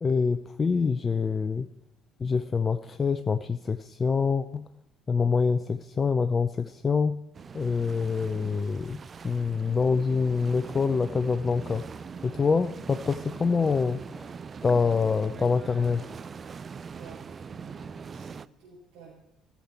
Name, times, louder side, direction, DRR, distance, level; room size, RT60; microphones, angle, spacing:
voice 1, 0.0-1.7 2.2-4.7 5.1-7.2 7.5-14.3 14.6-16.1, left 5 dB, 30° left, 11 dB, 0.5 m, -26 dB
sound 1, 7.3-18.5, right 6 dB, 35° right, 0.3 m, -42 dB
voice 2, 16.9-19.1, right 5 dB, 60° right, -9 dB, 4.6 m, -52 dB
15.0 x 7.1 x 4.5 m, 0.88 s
figure-of-eight pair, 50°, 0 cm